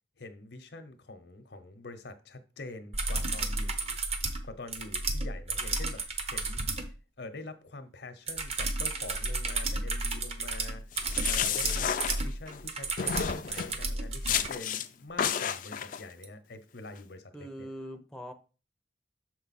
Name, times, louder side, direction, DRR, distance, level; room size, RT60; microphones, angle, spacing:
voice 1, 0.2-4.0 4.4-6.7 7.2-11.9 12.2-17.7, left 2 dB, 75° left, 0.8 m, -45 dB
sound 1, 2.9-6.9 8.3-14.5 16.2-16.3, right 3 dB, 35° right, 0.8 m, -32 dB
sound 2, 10.9-12.6 13.0-13.8 14.3-14.9 15.2-16.0, left 8 dB, 50° left, 0.4 m, -31 dB
voice 2, 17.3-18.3, equal, 5° left, 0.6 m, -42 dB
6.5 x 4.6 x 4.1 m
head